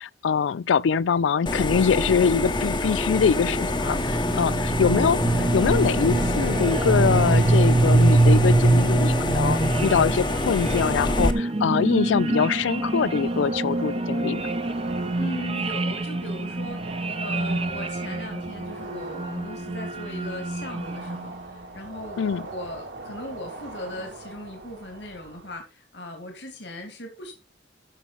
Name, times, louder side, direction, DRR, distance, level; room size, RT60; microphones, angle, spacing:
voice 1, 0.0-14.4 22.2-22.5, left 6 dB, 85° left, 0.4 m, -23 dB
sound 1, 1.5-11.3, left 2 dB, 25° left, 0.9 m, -26 dB
sound 2, 3.2-21.4, right 2 dB, 30° right, 0.6 m, -24 dB
voice 2, 4.2-4.7 15.1-27.3, left 1 dB, 70° left, 2.5 m, -38 dB
sound 3, 12.5-25.5, right 2 dB, 80° right, 2.5 m, -41 dB
13.0 x 5.5 x 4.1 m
head